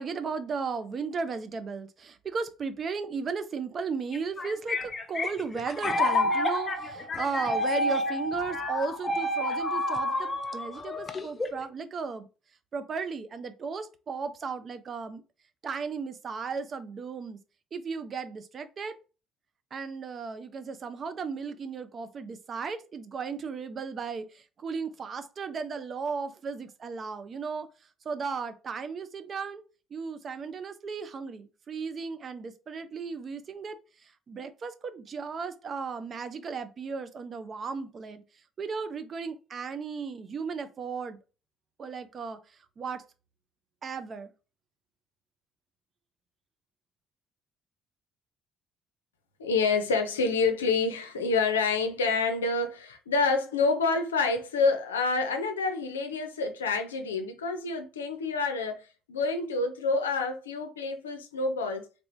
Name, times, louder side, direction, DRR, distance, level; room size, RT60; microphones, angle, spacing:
voice 1, 0.0-12.3 12.7-15.2 15.6-17.4 17.7-19.0 19.7-27.7 28.1-29.6 29.9-33.8 34.3-38.2 38.6-41.2 41.8-42.4 42.8-43.0 43.8-44.3, right 5 dB, 45° right, 0.5 m, -35 dB
sound 1, 4.1-11.7, left 2 dB, 35° left, 0.5 m, -29 dB
voice 2, 49.4-61.9, left 4 dB, 90° left, 0.5 m, -28 dB
3.3 x 3.0 x 2.6 m
hypercardioid pair, 55°, 0 cm